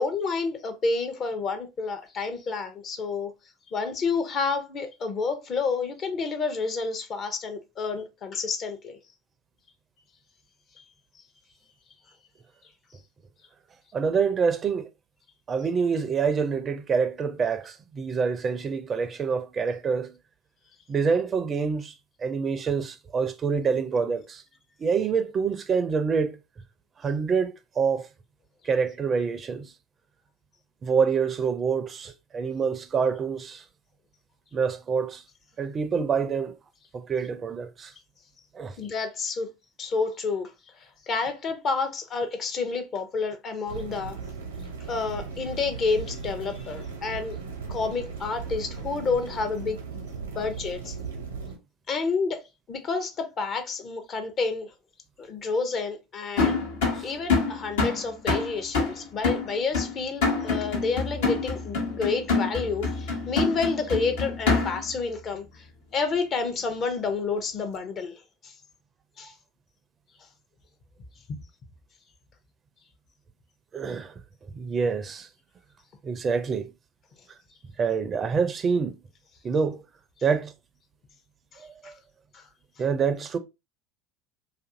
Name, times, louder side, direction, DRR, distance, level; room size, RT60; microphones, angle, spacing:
voice 1, 0.0-3.3 3.7-9.0 38.8-39.5 39.8-40.5 40.8-44.2 44.9-47.4 47.7-50.0 50.4-50.9 51.9-52.4 52.7-54.7 55.2-56.6 57.0-65.7 65.9-68.1 68.4-68.5 69.2-69.3 71.3-71.4 81.5-81.9 82.3-82.4, left 4 dB, 45° left, 0.6 m, -29 dB
voice 2, 13.9-14.9 15.5-20.2 20.9-21.9 22.2-24.4 24.8-26.4 27.0-28.1 28.6-29.7 30.8-33.6 34.5-35.2 35.6-36.5 36.9-37.9 38.5-38.8 57.0-57.1 73.7-74.2 74.5-75.3 76.0-76.7 77.8-79.0 79.4-79.8 80.2-80.5 81.6-81.9 82.8-83.4, right 5 dB, 35° right, 0.4 m, -26 dB
sound 1, 43.7-51.6, right 5 dB, 90° right, 0.7 m, -37 dB
sound 2, 56.4-65.0, left 4 dB, 75° left, 0.9 m, -26 dB
2.6 x 2.5 x 2.5 m
hypercardioid pair, 80°, 0 cm